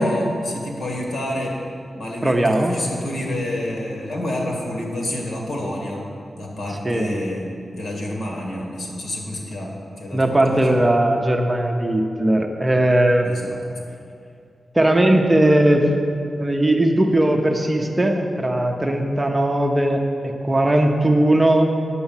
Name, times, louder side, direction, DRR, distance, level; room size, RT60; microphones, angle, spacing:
voice 1, 0.0-1.6 2.0-6.0 6.4-7.4 7.7-10.8 13.2-13.6, left 1 dB, 70° left, -1 dB, 2.1 m, -28 dB
voice 2, 2.2-2.8 6.8-7.1 10.1-13.3 14.7-15.9 16.3-21.7, right 1 dB, 15° right, 2 dB, 0.7 m, -18 dB
9.6 x 7.0 x 7.2 m, 2.5 s
wide cardioid pair, 160°, 0 cm